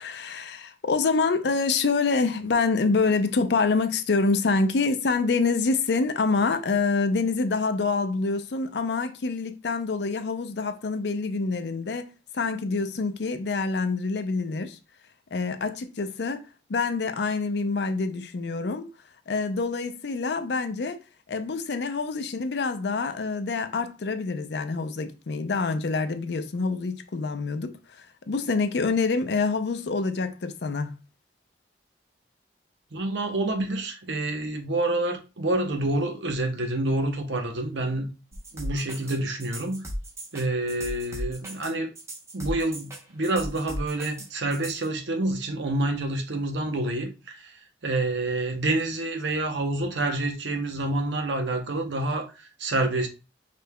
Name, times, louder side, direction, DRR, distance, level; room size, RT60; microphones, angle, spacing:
voice 1, 0.0-14.8 15.3-18.9 19.3-21.0 21.3-30.9, left 4 dB, 70° left, 0.5 m, -26 dB
voice 2, 32.9-38.1 38.5-39.8 40.3-41.9 42.3-53.1, right 2 dB, 85° right, 0.8 m, -28 dB
sound 1, 38.3-44.9, right 1 dB, 15° right, 0.8 m, -37 dB
5.2 x 3.2 x 2.2 m
head